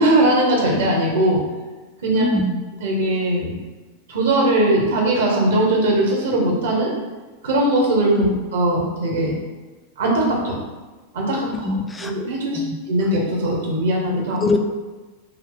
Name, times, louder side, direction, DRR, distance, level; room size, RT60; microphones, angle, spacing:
voice 1, 0.0-1.4 2.0-2.3 2.8-3.5 4.1-6.9 7.4-8.1 8.5-9.3 10.0-10.6 11.1-11.7 12.0-12.6 12.9-14.4, right 1 dB, 60° right, -2 dB, 0.9 m, -19 dB
voice 2, 2.1-2.6 8.2-8.4 11.6-12.1 12.5-12.7 14.4-14.6, left 2 dB, 10° left, 4 dB, 0.3 m, -22 dB
3.4 x 2.1 x 3.8 m, 1.2 s
figure-of-eight pair, 90°, 0 cm